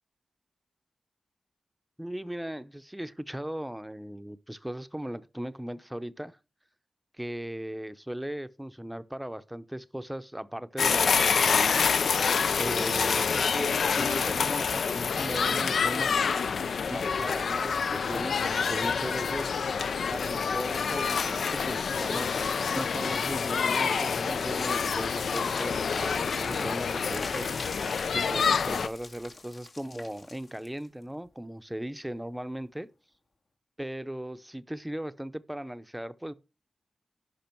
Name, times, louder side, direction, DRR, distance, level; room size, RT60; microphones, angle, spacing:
voice 1, 2.0-6.4 7.2-11.9 12.6-16.4 16.9-19.6 20.1-27.7 28.1-32.9 33.8-36.3, right 1 dB, 10° right, 0.6 m, -37 dB
sound 1, 10.8-28.9, left 6 dB, 85° left, 0.4 m, -27 dB
sound 2, 25.3-30.9, left 3 dB, 70° left, 1.9 m, -42 dB
10.5 x 5.1 x 4.5 m
cardioid pair, 65°, 0 cm